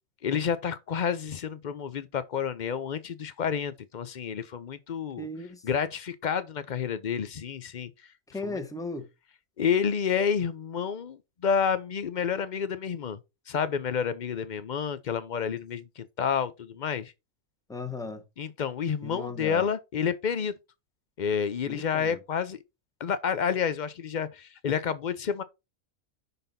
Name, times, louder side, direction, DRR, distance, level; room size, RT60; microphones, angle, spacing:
voice 1, 0.2-5.3 5.6-8.6 9.6-13.2 13.5-17.1 18.4-20.5 21.2-22.6 23.0-25.4, left 7 dB, 55° left, 0.5 m, -29 dB
voice 2, 5.2-5.6 8.3-9.1 17.7-18.2 19.0-19.6 21.7-22.1, left 2 dB, 5° left, 0.9 m, -36 dB
5.9 x 4.0 x 5.2 m
omnidirectional pair, 1.5 m